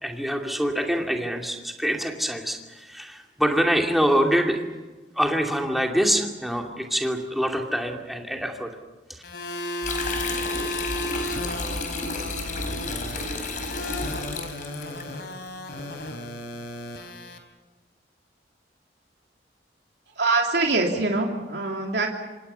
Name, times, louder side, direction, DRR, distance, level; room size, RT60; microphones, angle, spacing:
voice 1, 0.0-4.6 5.1-8.7 9.1-9.2, equal, ahead, 1 dB, 2.6 m, -25 dB
sound 1, 9.2-17.4, left 1 dB, 65° left, 3.8 m, -34 dB
sound 2, 9.8-15.0, left 2 dB, 45° left, 4.5 m, -31 dB
voice 2, 20.2-22.1, right 3 dB, 70° right, 0 dB, 2.9 m, -24 dB
27.0 x 25.5 x 5.8 m, 1.2 s
head